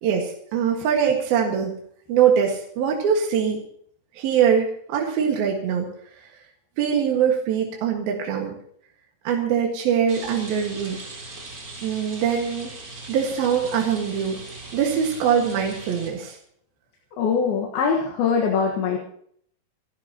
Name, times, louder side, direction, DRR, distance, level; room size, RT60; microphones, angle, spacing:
voice 1, 0.0-1.7 2.1-3.6 4.2-5.9 6.8-8.6 9.3-11.0 11.8-12.7 13.1-14.4 14.7-16.4, right 7 dB, 75° right, 1 dB, 3.6 m, -22 dB
Rain, 10.1-16.1, right 2 dB, 30° right, 3.4 m, -39 dB
voice 2, 17.2-19.0, left 6 dB, 80° left, -1 dB, 3.5 m, -22 dB
28.5 x 12.0 x 3.0 m, 0.63 s
omnidirectional pair, 4.4 m